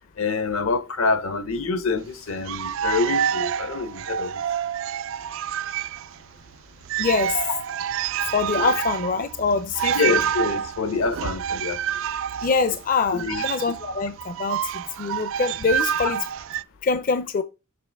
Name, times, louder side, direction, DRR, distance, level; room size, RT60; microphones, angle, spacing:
voice 1, 0.2-4.4 8.5-8.7 9.9-12.0 13.1-13.4, left 4 dB, 75° left, 0.8 m, -26 dB
sound 1, 2.3-6.2 6.5-6.6 6.8-16.6, right 9 dB, 65° right, 0.3 m, -28 dB
voice 2, 7.0-7.4 8.3-10.2 12.4-16.2 16.8-17.4, left 4 dB, 40° left, 0.5 m, -24 dB
6.8 x 5.1 x 3.4 m
head